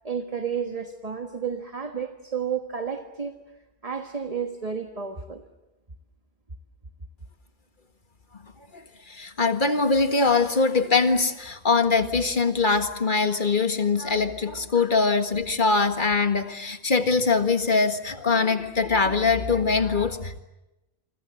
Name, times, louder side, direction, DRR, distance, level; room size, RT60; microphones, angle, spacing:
voice 1, 0.0-3.3 3.8-5.4, right 7 dB, 35° right, 5 dB, 1.6 m, -31 dB
voice 2, 9.1-20.4, left 4 dB, 50° left, 8 dB, 1.9 m, -22 dB
27.5 x 25.0 x 7.7 m, 0.97 s
omnidirectional pair, 1.1 m